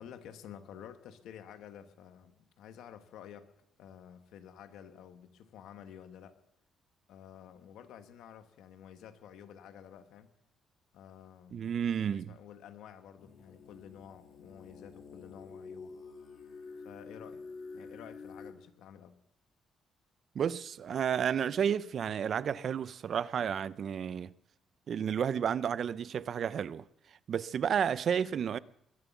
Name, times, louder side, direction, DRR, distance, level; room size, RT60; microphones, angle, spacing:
voice 1, 0.0-3.5 3.8-6.4 7.1-10.3 10.9-16.0 16.8-17.5 17.7-19.2, left 9 dB, 85° left, 1.3 m, -51 dB
voice 2, 11.5-12.3 20.3-24.3 24.9-26.8 27.3-28.6, right 8 dB, 60° right, 0.5 m, -31 dB
sound 1, 13.2-18.5, left 4 dB, 65° left, 2.8 m, -48 dB
21.5 x 7.5 x 7.1 m
cardioid pair, 90°, 0 cm